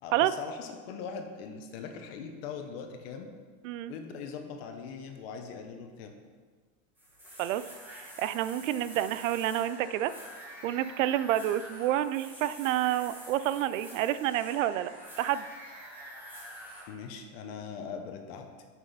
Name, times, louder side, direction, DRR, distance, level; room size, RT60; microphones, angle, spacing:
voice 1, 0.0-3.3 3.9-6.1 16.9-18.5, left 6 dB, 50° left, 5 dB, 1.0 m, -41 dB
sound 1, 7.0-16.8, equal, 5° right, 1.5 m, -47 dB
voice 2, 8.2-10.1 10.6-15.5, right 12 dB, 85° right, 14 dB, 0.5 m, -29 dB
6.4 x 6.2 x 5.5 m, 1.5 s
supercardioid pair, 175°, 37 cm